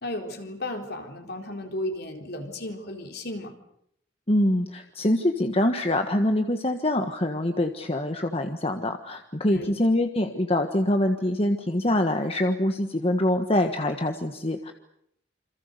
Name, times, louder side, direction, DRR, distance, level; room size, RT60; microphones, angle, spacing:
voice 1, 0.0-3.6 9.5-9.7, left 1 dB, 55° left, 4 dB, 4.1 m, -34 dB
voice 2, 4.3-14.7, left 1 dB, 30° left, 6 dB, 1.5 m, -24 dB
28.0 x 26.5 x 6.8 m, 0.73 s
head